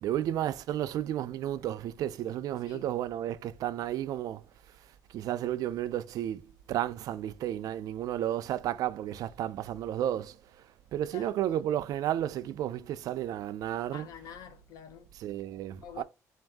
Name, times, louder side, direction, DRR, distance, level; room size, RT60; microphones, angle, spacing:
voice 1, 0.0-4.4 5.1-6.4 6.7-10.4 10.9-14.1 15.2-16.0, right 12 dB, 75° right, 0.4 m, -32 dB
voice 2, 11.1-11.6 13.9-15.1 15.8-16.0, left 9 dB, 75° left, 0.8 m, -47 dB
3.9 x 2.6 x 3.4 m
cardioid pair, 125°, 6 cm